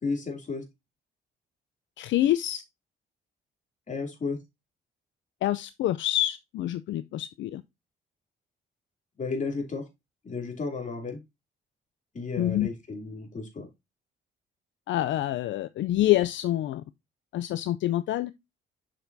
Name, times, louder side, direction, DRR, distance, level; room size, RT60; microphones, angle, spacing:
voice 1, 0.0-0.6 3.9-4.4 9.2-9.8 10.2-11.2 12.1-13.7, left 4 dB, 40° left, 2.9 m, -33 dB
voice 2, 2.0-2.6 5.4-7.6 12.4-12.7 14.9-16.8 17.3-18.3, left 14 dB, 70° left, 0.5 m, -26 dB
6.8 x 6.0 x 2.7 m
cardioid pair, 90°, 20 cm